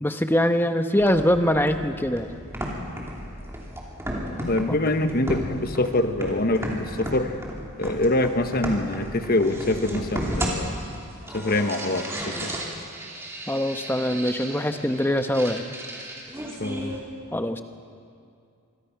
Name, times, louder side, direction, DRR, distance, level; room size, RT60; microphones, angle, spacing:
voice 1, 0.0-2.4 13.5-15.6 17.3-17.6, left 1 dB, 10° left, 7 dB, 0.9 m, -23 dB
sound 1, 1.0-17.0, equal, 10° right, 3.0 m, -34 dB
voice 2, 4.4-7.4 7.8-10.8 11.3-12.5 16.6-17.0, left 2 dB, 40° left, 8 dB, 1.2 m, -25 dB
26.0 x 23.5 x 5.9 m, 2.4 s
head